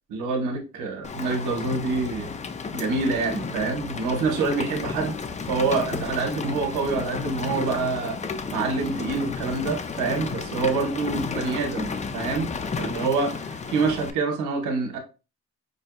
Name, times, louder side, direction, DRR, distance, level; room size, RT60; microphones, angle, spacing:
voice 1, 0.1-2.3 2.7-5.2 5.5-8.2 8.5-12.5 12.8-15.0, right 4 dB, 85° right, 3 dB, 1.1 m, -26 dB
Rain, 1.0-14.1, left 5 dB, 25° left, 0.4 m, -32 dB
5.2 x 2.6 x 2.2 m, 0.31 s
cardioid pair, 90°, 30 cm